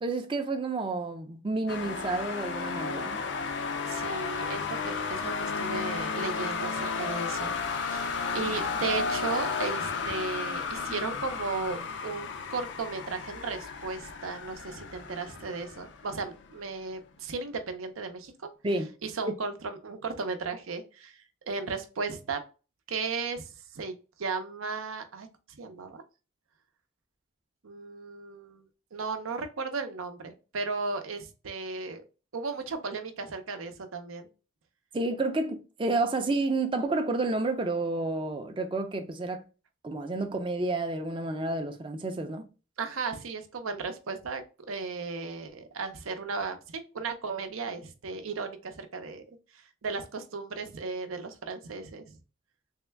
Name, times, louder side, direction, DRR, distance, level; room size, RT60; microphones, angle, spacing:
voice 1, 0.0-3.2 18.6-18.9 19.3-19.4 34.9-39.4 39.8-42.4, right 2 dB, 25° right, 0.4 m, -30 dB
sound 1, 1.7-16.5, left 5 dB, 60° left, 0.4 m, -33 dB
voice 2, 3.9-7.5 7.9-18.3 19.0-22.4 22.9-26.0 27.6-28.7 28.9-32.0 32.3-34.3 42.8-49.2 49.8-52.1, right 4 dB, 90° right, 0.6 m, -35 dB
3.5 x 2.2 x 3.2 m
head